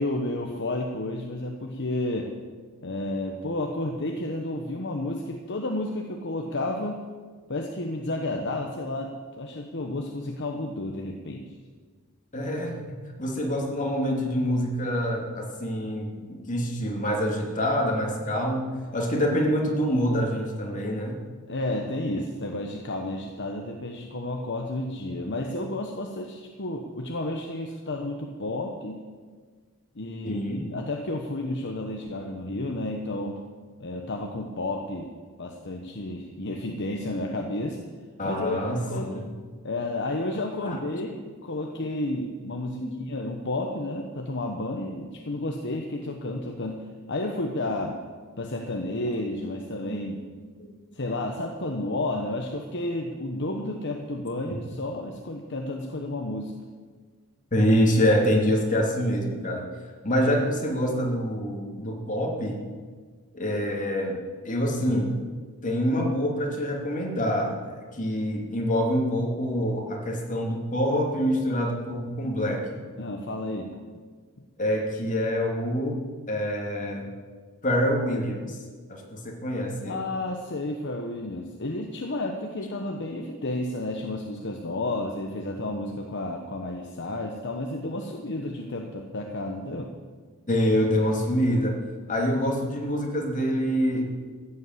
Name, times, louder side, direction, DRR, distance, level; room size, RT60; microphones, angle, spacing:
voice 1, 0.0-2.3 2.8-7.0 7.5-11.5 21.5-29.0 29.9-33.4 33.8-35.1 35.4-37.9 38.2-39.1 39.6-46.8 47.1-48.0 48.4-50.2 50.9-56.5 73.0-73.7 79.9-89.9, left 2 dB, 55° left, 2 dB, 1.1 m, -31 dB
voice 2, 12.3-21.2 30.2-30.6 38.2-39.3 40.6-40.8 42.8-42.9 49.9-50.0 50.6-50.7 57.5-59.7 60.0-62.6 63.3-64.2 64.4-65.1 65.6-72.8 74.6-76.0 76.3-77.1 77.6-78.6 78.9-80.1 90.5-91.8 92.1-94.1, equal, 35° left, 0 dB, 2.6 m, -26 dB
15.0 x 8.5 x 8.0 m, 1.5 s
head